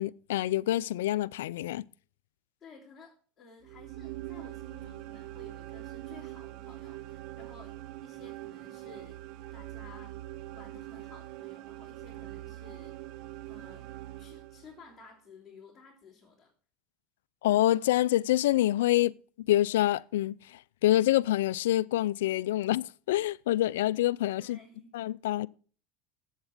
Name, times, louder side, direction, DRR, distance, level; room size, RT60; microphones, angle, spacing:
voice 1, 0.0-1.8 17.4-24.6 24.9-25.5, left 14 dB, 85° left, 0.3 m, -27 dB
voice 2, 2.6-9.2 9.5-10.2 10.5-13.0 13.5-13.9 14.2-16.5 24.4-25.0, left 4 dB, 25° left, 3.2 m, -54 dB
sound 1, 3.6-15.0, right 16 dB, 60° right, 0.6 m, -43 dB
8.1 x 7.2 x 5.9 m
supercardioid pair, 105°, 0 cm